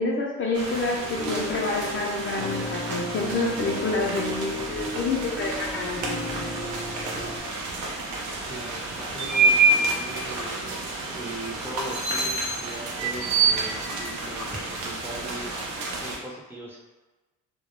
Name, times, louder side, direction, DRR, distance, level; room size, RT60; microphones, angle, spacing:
voice 1, 0.0-6.4, left 3 dB, 40° left, -1 dB, 0.5 m, -28 dB
sound 1, 0.5-16.2, right 3 dB, 70° right, 0.6 m, -28 dB
sound 2, 1.0-7.4, equal, 55° right, 0.9 m, -35 dB
voice 2, 8.5-16.8, right 1 dB, 5° right, -4 dB, 0.5 m, -40 dB
2.2 x 2.1 x 2.9 m, 1.2 s
cardioid pair, 90°, 30 cm